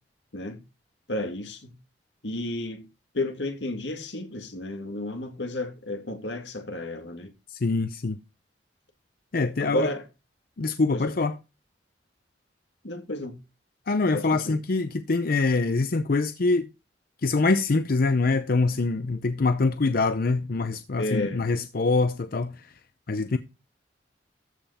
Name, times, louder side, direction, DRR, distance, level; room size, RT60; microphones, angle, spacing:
voice 1, 1.1-1.7 2.2-2.9 3.1-7.3 9.6-10.0 10.9-11.1 12.8-13.4 14.1-14.6 21.0-21.5, left 1 dB, 85° left, 2.0 m, -32 dB
voice 2, 7.5-8.2 9.3-9.9 10.6-11.3 13.9-16.7 17.2-22.7 23.1-23.4, left 3 dB, 55° left, 0.6 m, -24 dB
14.0 x 5.6 x 4.2 m
head